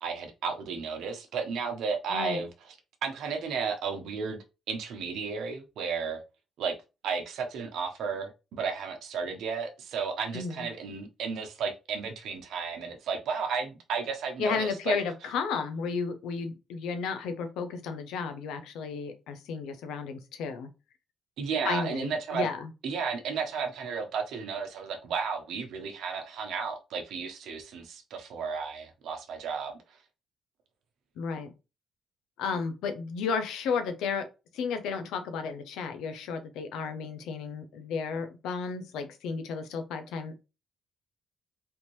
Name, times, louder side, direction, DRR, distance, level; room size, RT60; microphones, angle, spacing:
voice 1, 0.0-2.5 3.0-6.2 6.6-6.7 7.0-15.0 21.4-22.5 22.8-29.7, right 5 dB, 80° right, 0.8 m, -33 dB
voice 2, 2.1-2.4 10.3-10.7 14.4-20.7 21.6-22.7 31.2-31.5 32.4-34.3 34.5-40.4, left 5 dB, 90° left, 0.7 m, -33 dB
3.5 x 2.7 x 3.1 m
cardioid pair, 90°, 0 cm